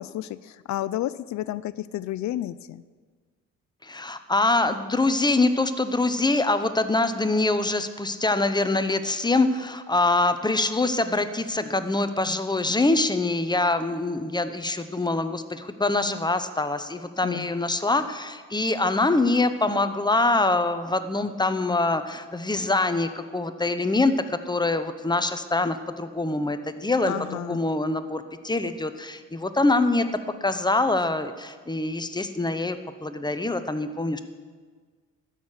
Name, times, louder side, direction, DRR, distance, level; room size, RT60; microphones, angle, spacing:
voice 1, 0.0-2.8 17.2-17.5 27.1-27.7, left 13 dB, 65° left, 17 dB, 0.4 m, -31 dB
voice 2, 3.8-30.0 30.4-34.2, left 2 dB, 15° left, 10 dB, 0.8 m, -24 dB
13.0 x 6.6 x 8.0 m, 1.5 s
cardioid pair, 90°, 30 cm